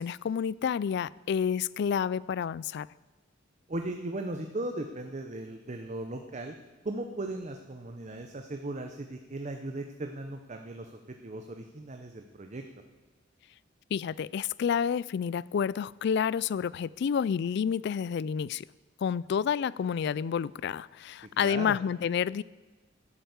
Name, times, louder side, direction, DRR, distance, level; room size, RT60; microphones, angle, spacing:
voice 1, 0.0-2.9 13.9-18.7 19.0-22.4, left 7 dB, 60° left, 0.3 m, -29 dB
voice 2, 3.7-6.5 6.8-12.6 21.4-21.8, right 2 dB, 40° right, 0.8 m, -37 dB
11.0 x 8.1 x 8.0 m
head